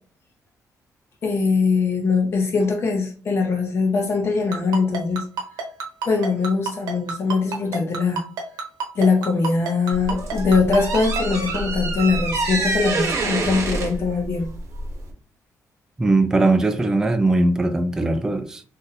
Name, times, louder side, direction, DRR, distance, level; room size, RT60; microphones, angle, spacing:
voice 1, 1.2-5.2 6.1-8.2 8.9-14.5, left 4 dB, 40° left, 0.7 m, -21 dB
Ringtone, 4.5-11.2, right 4 dB, 90° right, 0.8 m, -27 dB
sound 1, 9.9-15.1, right 2 dB, 50° right, 0.9 m, -26 dB
voice 2, 16.0-18.6, right 2 dB, 10° right, 0.3 m, -20 dB
2.6 x 2.6 x 3.9 m
cardioid pair, 140°, 6 cm